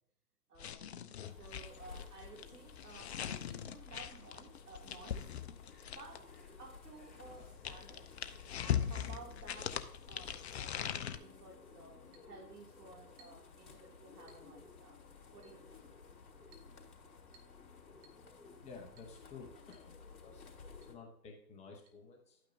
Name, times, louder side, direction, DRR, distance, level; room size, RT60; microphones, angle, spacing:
voice 1, 0.5-0.9 1.4-3.2 3.4-8.1 8.6-15.0 15.3-15.9 17.0-17.2, right 3 dB, 65° right, 2.8 m, -55 dB
sound 1, 0.6-6.3 7.2-11.2, left 9 dB, 40° left, 0.7 m, -41 dB
sound 2, 1.2-20.9, left 5 dB, 60° left, 2.9 m, -56 dB
Chink clink, 12.1-12.3 13.2-13.5 14.3-14.5 15.4-15.6 16.5-16.7 17.3-17.6 18.0-18.2 19.0-19.2 19.7-19.9 20.2-20.3 20.8-21.0 21.9-22.0, right 3 dB, 15° right, 0.7 m, -65 dB
voice 2, 18.6-20.5 20.8-22.4, left 4 dB, 15° left, 0.9 m, -53 dB
12.0 x 8.9 x 2.7 m
figure-of-eight pair, 125°, 50 cm